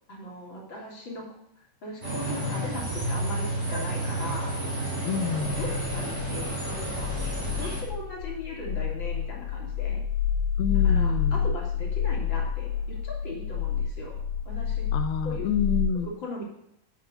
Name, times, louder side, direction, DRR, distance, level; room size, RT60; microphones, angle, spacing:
voice 1, 0.1-1.3 1.6-4.5 5.4-7.1 7.5-10.0 10.8-14.9 15.2-15.5 16.0-16.4, left 2 dB, 30° left, -3 dB, 3.4 m, -39 dB
sound 1, 2.0-7.8, right 1 dB, 15° right, 3.6 m, -32 dB
Piano, 3.0-8.6, right 2 dB, 85° right, 3.5 m, -35 dB
voice 2, 5.0-5.6 10.6-11.5 14.9-16.1, left 7 dB, 80° left, 7 dB, 2.2 m, -28 dB
sound 2, 5.5-15.9, left 7 dB, 50° left, 2.4 m, -29 dB
9.8 x 8.5 x 6.8 m, 0.77 s
omnidirectional pair, 4.9 m